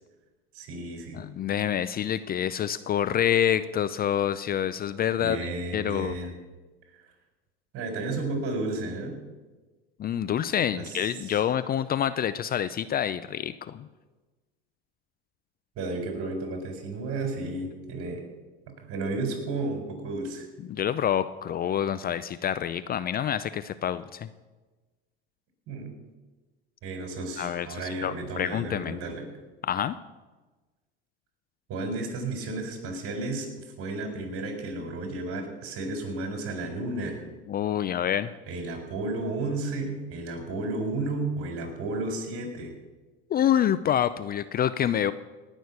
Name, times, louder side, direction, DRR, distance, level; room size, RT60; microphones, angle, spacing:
voice 1, 0.5-1.2 5.2-6.3 7.7-9.2 10.7-11.4 15.8-18.2 18.7-20.5 25.7-25.9 26.8-29.2 31.7-33.5 33.8-37.2 38.5-42.7, right 2 dB, 50° right, 4 dB, 4.4 m, -33 dB
voice 2, 1.1-5.5 5.7-6.1 10.0-13.9 20.7-24.3 27.4-29.0 29.6-30.0 37.5-38.3 43.3-45.1, left 10 dB, 30° left, 14 dB, 0.5 m, -27 dB
18.0 x 6.4 x 8.2 m, 1.2 s
hypercardioid pair, 90°, 29 cm